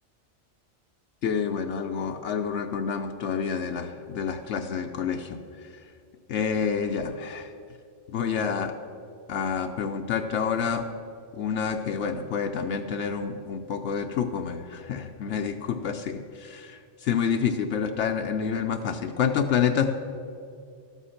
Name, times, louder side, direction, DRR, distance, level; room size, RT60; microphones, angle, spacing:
voice 1, 1.2-5.7 6.3-7.5 8.1-8.7 9.3-10.8 11.3-19.8, left 7 dB, 75° left, 5 dB, 0.9 m, -28 dB
12.0 x 8.2 x 5.7 m, 2.4 s
omnidirectional pair, 1.2 m